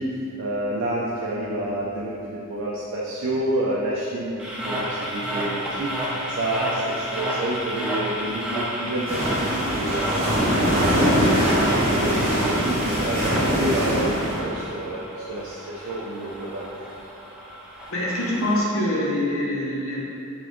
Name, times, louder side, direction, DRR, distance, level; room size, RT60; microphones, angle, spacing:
voice 1, 0.0-10.2 10.6-16.6, right 1 dB, 60° right, -5 dB, 0.4 m, -29 dB
sound 1, 4.4-18.6, equal, 5° right, 0.5 m, -31 dB
sound 2, 9.1-14.4, equal, 25° right, 1.2 m, -22 dB
voice 2, 17.9-20.0, left 1 dB, 65° left, -4 dB, 0.8 m, -24 dB
4.1 x 3.3 x 3.0 m, 2.6 s
head